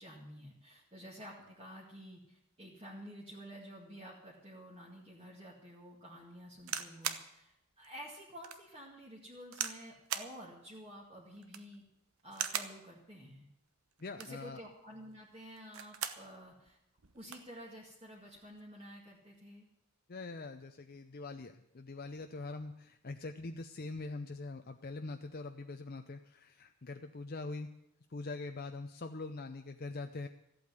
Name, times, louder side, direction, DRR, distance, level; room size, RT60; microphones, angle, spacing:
voice 1, 0.0-11.9 12.2-13.5 14.2-16.8 17.1-19.7, equal, 25° right, -4 dB, 2.0 m, -51 dB
sound 1, 6.6-7.3 7.8-7.9 8.4-8.6 9.5-9.8 10.1-10.3 11.4-11.8 12.3-12.8 14.0-14.4 15.6-16.3 16.7-16.8 17.0-17.5 18.3-18.6, right 9 dB, 70° right, 1.0 m, -39 dB
voice 2, 14.0-14.6 20.1-27.7 28.1-30.3, left 3 dB, 40° left, 6 dB, 0.6 m, -43 dB
14.0 x 8.5 x 9.5 m, 0.84 s
head